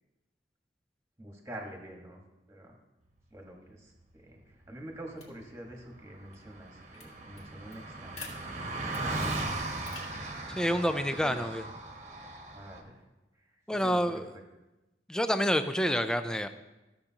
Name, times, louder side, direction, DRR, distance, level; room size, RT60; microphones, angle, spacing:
voice 1, 1.2-2.2 2.5-2.7 3.3-8.6 8.9-9.6 10.7-10.9 11.2-11.4 12.5-13.0 13.4-13.5 13.8-14.2, right 1 dB, 15° right, 0 dB, 1.4 m, -47 dB
sound 1, 5.1-13.0, left 3 dB, 40° left, 2.1 m, -54 dB
Car passing by, 5.7-5.8 6.0-12.8, right 2 dB, 40° right, 1.1 m, -38 dB
voice 2, 10.5-11.6 13.7-14.3 15.1-16.5, equal, 5° left, 9 dB, 0.3 m, -28 dB
15.0 x 6.6 x 2.9 m, 1.0 s
head